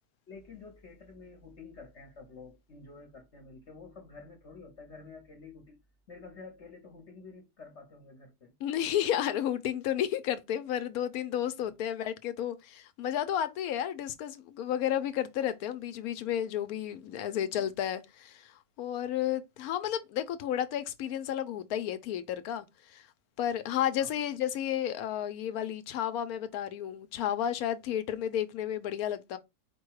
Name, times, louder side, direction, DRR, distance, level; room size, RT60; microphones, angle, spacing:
voice 1, 0.3-5.8 6.1-8.5 11.6-11.7 17.5-17.7 24.0-24.2, left 4 dB, 50° left, 1.1 m, -50 dB
voice 2, 8.6-23.0 23.4-29.4, left 10 dB, 70° left, 1.0 m, -32 dB
4.8 x 2.2 x 4.6 m
omnidirectional pair, 1.7 m